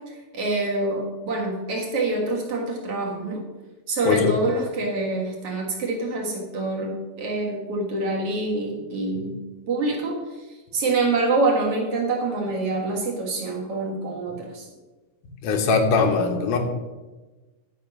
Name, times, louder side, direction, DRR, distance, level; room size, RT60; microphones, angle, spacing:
voice 1, 0.1-3.4 3.9-9.4 9.7-10.5 10.7-14.7, right 2 dB, 50° right, -1 dB, 2.0 m, -26 dB
voice 2, 15.4-16.6, left 4 dB, 70° left, 5 dB, 2.2 m, -20 dB
11.0 x 5.7 x 6.1 m, 1.2 s
omnidirectional pair, 4.5 m